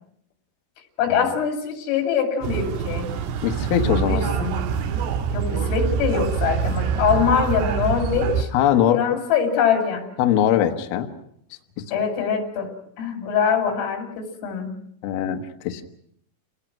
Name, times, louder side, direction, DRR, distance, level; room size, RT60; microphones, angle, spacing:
voice 1, 1.0-3.1 3.9-4.6 5.3-8.5 8.9-10.1 11.9-12.7 13.0-14.8, left 7 dB, 90° left, 4 dB, 5.3 m, -23 dB
sound 1, 2.4-8.4, right 7 dB, 70° right, 3.1 m, -25 dB
voice 2, 3.4-4.4 8.5-9.2 10.2-11.1 11.8-11.9 15.0-15.8, left 10 dB, 70° left, 5 dB, 2.6 m, -21 dB
28.5 x 19.5 x 6.1 m, 0.68 s
omnidirectional pair, 5.7 m